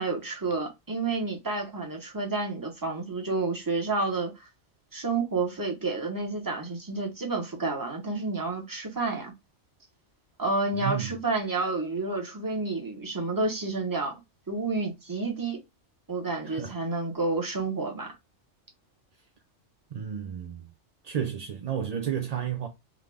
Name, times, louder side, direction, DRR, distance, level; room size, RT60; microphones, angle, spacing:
voice 1, 0.0-4.4 4.9-9.3 10.4-14.2 14.5-15.6 16.1-18.1, right 3 dB, 20° right, 0.8 m, -30 dB
voice 2, 10.7-11.1 16.4-16.8 19.9-20.7 21.0-22.7, right 9 dB, 60° right, 0.4 m, -32 dB
3.8 x 2.3 x 3.3 m
omnidirectional pair, 1.2 m